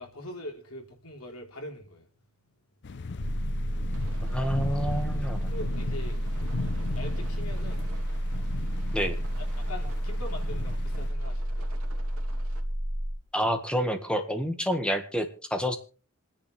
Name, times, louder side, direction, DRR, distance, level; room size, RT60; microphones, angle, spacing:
voice 1, 0.0-2.1 2.4-2.6 3.1-3.4 5.5-6.2 7.0-7.8 9.6-11.7, left 1 dB, 85° left, 3.8 m, -42 dB
sound 1, 2.8-11.1, left 3 dB, 55° left, 0.6 m, -38 dB
sound 2, 3.2-13.2, equal, 25° right, 2.0 m, -31 dB
sound 3, 3.9-12.6, right 3 dB, 85° right, 2.3 m, -51 dB
voice 2, 4.3-5.5 8.9-9.2 13.3-15.8, equal, 5° left, 1.6 m, -28 dB
26.5 x 10.0 x 3.4 m
head